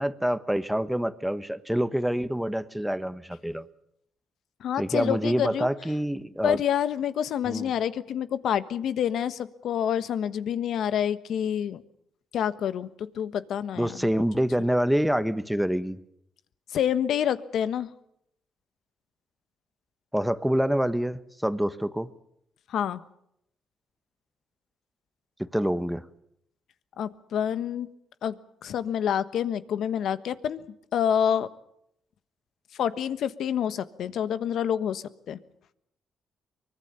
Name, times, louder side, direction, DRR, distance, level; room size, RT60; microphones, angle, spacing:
voice 1, 0.0-3.7 4.8-6.6 7.5-7.7 13.8-16.0 20.1-22.1 25.4-26.0, equal, 5° right, 13 dB, 1.3 m, -26 dB
voice 2, 4.6-5.7 6.4-11.8 12.3-14.1 16.7-17.9 22.7-23.0 27.0-27.9 28.2-28.4 28.6-30.6 30.9-31.5 32.8-35.4, left 9 dB, 70° left, 14 dB, 1.3 m, -27 dB
24.0 x 21.5 x 7.0 m, 0.75 s
cardioid pair, 90°, 0 cm